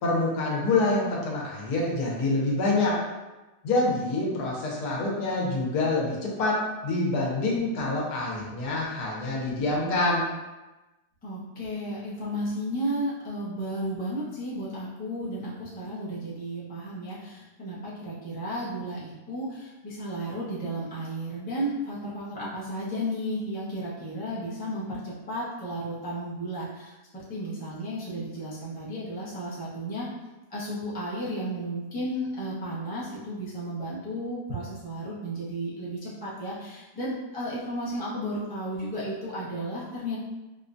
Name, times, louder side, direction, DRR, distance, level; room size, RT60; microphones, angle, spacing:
voice 1, 0.0-3.0 3.6-6.6 6.8-10.3, left 2 dB, 75° left, -3 dB, 1.3 m, -26 dB
voice 2, 11.2-30.1 30.5-40.2, equal, 15° left, -9 dB, 0.3 m, -33 dB
4.2 x 2.2 x 2.5 m, 1.1 s
omnidirectional pair, 1.8 m